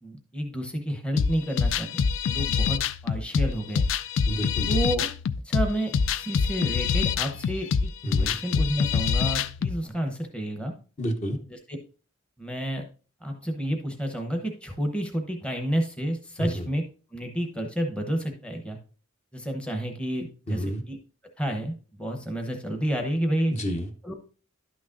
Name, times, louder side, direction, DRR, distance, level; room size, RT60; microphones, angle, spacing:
voice 1, 0.0-2.8 3.0-3.9 4.7-5.1 5.4-7.9 8.2-10.7 11.5-11.6 12.4-12.8 13.2-16.8 17.1-18.8 19.3-21.0 21.4-23.5 24.0-24.1, right 1 dB, 5° left, 3 dB, 0.8 m, -30 dB
sound 1, 1.2-9.8, left 6 dB, 65° left, 0.3 m, -25 dB
voice 2, 4.2-4.8 8.0-8.4 11.0-11.4 16.4-16.7 20.5-20.8 23.5-23.9, equal, 35° left, 5 dB, 0.9 m, -29 dB
11.5 x 6.1 x 2.5 m, 0.37 s
head